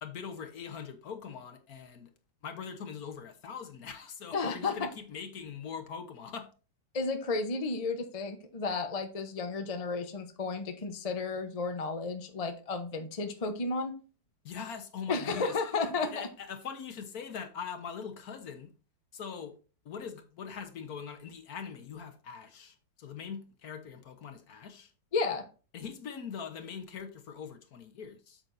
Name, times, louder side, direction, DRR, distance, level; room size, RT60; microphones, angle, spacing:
voice 1, 0.0-2.1 2.4-6.5 14.4-15.6 16.0-18.7 19.1-19.5 19.8-24.9 25.7-28.4, left 6 dB, 60° left, 1.4 m, -42 dB
voice 2, 4.3-4.8 6.9-14.0 15.1-16.3 25.1-25.5, left 3 dB, 30° left, 0.7 m, -33 dB
8.7 x 7.7 x 2.7 m
omnidirectional pair, 2.0 m